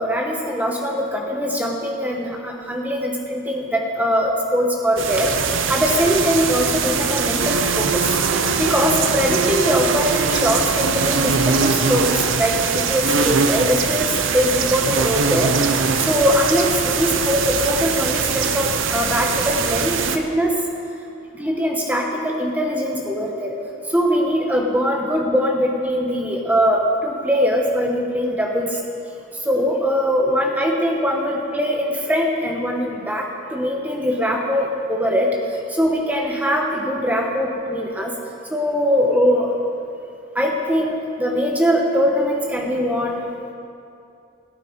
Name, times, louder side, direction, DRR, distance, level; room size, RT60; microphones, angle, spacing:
voice 1, 0.0-5.3 5.7-8.1 8.6-15.5 15.9-20.5 21.4-23.6 23.9-28.8 29.4-35.3 35.7-38.1 38.5-39.5 40.3-43.3, equal, 10° right, 0 dB, 1.2 m, -21 dB
sound 1, 5.0-20.2, right 5 dB, 75° right, 0.7 m, -21 dB
16.5 x 8.7 x 4.8 m, 2.5 s
head